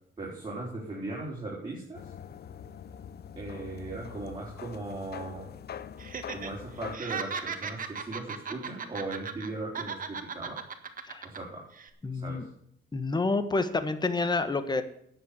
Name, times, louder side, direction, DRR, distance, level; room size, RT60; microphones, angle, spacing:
voice 1, 0.2-2.1 3.4-5.5 6.3-10.6 11.2-11.7 12.1-12.5, right 2 dB, 25° right, -4 dB, 4.7 m, -38 dB
sound 1, 1.9-7.0, left 8 dB, 55° left, 0.8 m, -43 dB
Laughter, 6.0-6.5 6.8-9.5 9.7-11.4 11.7-11.9, right 6 dB, 45° right, 1.7 m, -37 dB
voice 2, 12.0-12.4 12.9-14.8, left 3 dB, 20° left, 11 dB, 1.4 m, -28 dB
10.0 x 8.0 x 8.4 m, 0.70 s
cardioid pair, 90°, 20 cm